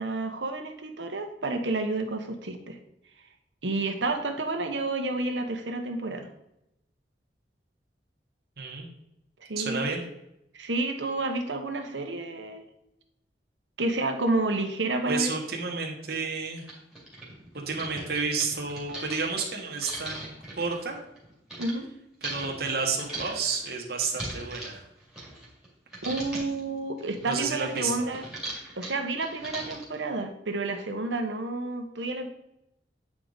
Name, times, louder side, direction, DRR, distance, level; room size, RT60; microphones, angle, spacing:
voice 1, 0.0-2.8 3.6-6.3 9.4-9.8 10.5-12.6 13.8-15.3 21.6-21.9 26.0-28.3 28.8-32.3, right 2 dB, 90° right, 5 dB, 1.1 m, -30 dB
voice 2, 8.6-8.9 9.6-10.0 15.1-16.6 17.5-21.0 22.2-24.9 27.3-28.1, right 4 dB, 60° right, 0 dB, 1.3 m, -31 dB
sound 1, 15.4-15.5 16.1-16.2 16.5-21.7 22.2-25.7 25.9-26.6 27.0-30.0, right 1 dB, 5° right, 2.4 m, -40 dB
8.5 x 4.9 x 4.0 m, 0.83 s
head